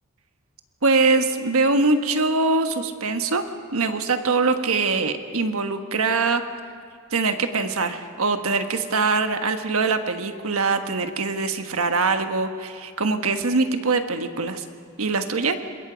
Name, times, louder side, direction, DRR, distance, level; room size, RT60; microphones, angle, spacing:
voice 1, 0.8-3.4 3.7-6.4 7.1-14.6 15.0-15.6, right 3 dB, 80° right, 7 dB, 1.4 m, -23 dB
26.5 x 21.5 x 5.1 m, 2.3 s
head